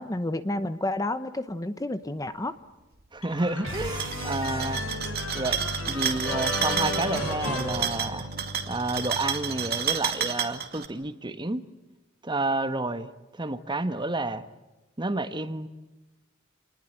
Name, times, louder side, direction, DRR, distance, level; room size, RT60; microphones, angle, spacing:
voice 1, 0.0-2.6, left 1 dB, 15° left, 11 dB, 0.8 m, -30 dB
voice 2, 3.1-4.8 5.3-5.6 5.9-8.3 8.7-11.6 12.2-14.4 15.0-15.7, right 2 dB, 20° right, 11 dB, 1.3 m, -30 dB
sound 1, 3.2-8.6, left 2 dB, 75° left, 5.8 m, -34 dB
sound 2, 3.6-9.8, equal, 70° right, 3.5 m, -38 dB
sound 3, 3.8-10.9, right 8 dB, 50° right, 2.4 m, -31 dB
27.5 x 20.0 x 10.0 m, 1.1 s
head